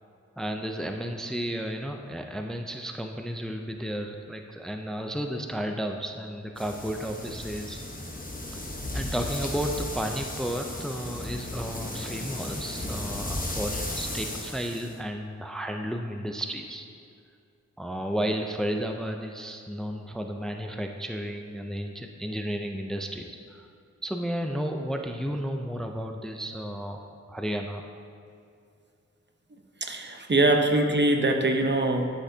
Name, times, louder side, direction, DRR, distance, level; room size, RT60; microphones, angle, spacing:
voice 1, 0.4-7.8 8.9-16.9 17.8-23.7 24.0-27.0 27.3-27.8, equal, ahead, 4 dB, 0.5 m, -33 dB
sound 1, 6.6-15.0, left 1 dB, 30° left, 1.0 m, -35 dB
voice 2, 29.8-32.1, right 2 dB, 35° right, 3 dB, 0.9 m, -23 dB
12.0 x 5.8 x 2.8 m, 2.5 s
wide cardioid pair, 45°, 30 cm